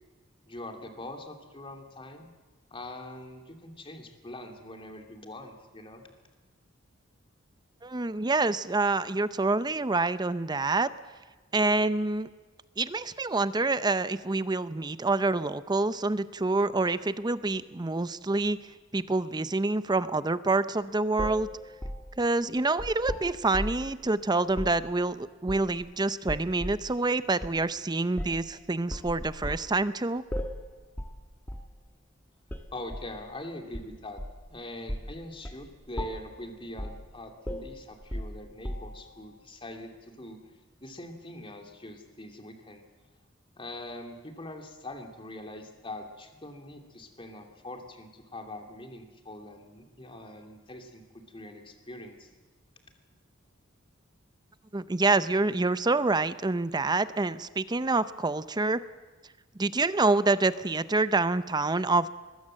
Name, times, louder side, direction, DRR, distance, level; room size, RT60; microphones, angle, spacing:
voice 1, 0.5-2.3 2.7-6.0 32.7-34.2 34.5-40.4 40.8-42.8 43.6-52.3, left 1 dB, 25° left, 4 dB, 2.8 m, -43 dB
voice 2, 7.8-10.9 11.5-12.3 12.8-18.6 18.9-21.5 22.2-30.2 54.7-58.8 59.6-62.1, right 3 dB, 20° right, 14 dB, 0.6 m, -27 dB
sound 1, 21.2-23.9 24.5-24.8 25.5-25.9 26.3-26.9 27.4-27.6 28.2-28.5 28.9-29.7 30.3-30.7 31.0-31.2 31.5-31.7 32.5-33.1 33.7-34.5 34.9-35.1 35.4-35.6 36.0-36.4 36.8-37.1 37.5-39.1, equal, 10° left, 1.5 m, -36 dB
22.5 x 21.0 x 7.6 m, 1.3 s
head